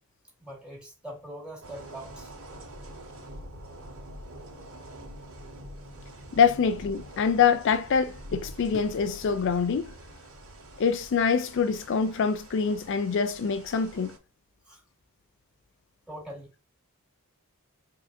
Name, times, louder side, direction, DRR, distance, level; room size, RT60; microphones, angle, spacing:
voice 1, 0.4-2.6 14.6-14.8 16.1-16.6, right 1 dB, 5° right, 2.1 m, -43 dB
sound 1, 1.6-14.2, right 1 dB, 75° right, 2.3 m, -45 dB
voice 2, 6.3-9.9 10.8-14.1, left 6 dB, 55° left, 0.4 m, -25 dB
4.9 x 3.7 x 2.6 m
head